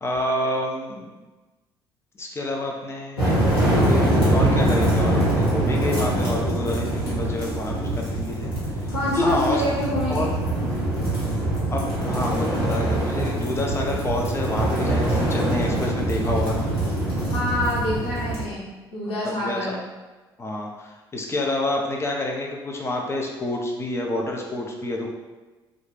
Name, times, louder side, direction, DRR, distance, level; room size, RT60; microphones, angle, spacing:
voice 1, 0.0-1.2 2.2-8.5 8.8-9.6 10.1-10.3 11.7-16.7 19.2-19.7 20.4-25.1, left 1 dB, 20° left, 0 dB, 0.6 m, -28 dB
sound 1, 3.2-18.4, right 1 dB, 80° left, 1.1 m, -23 dB
voice 2, 8.9-10.3 17.3-19.8, left 1 dB, 50° left, -12 dB, 1.3 m, -26 dB
2.5 x 2.3 x 3.7 m, 1.2 s
figure-of-eight pair, 50°, 13 cm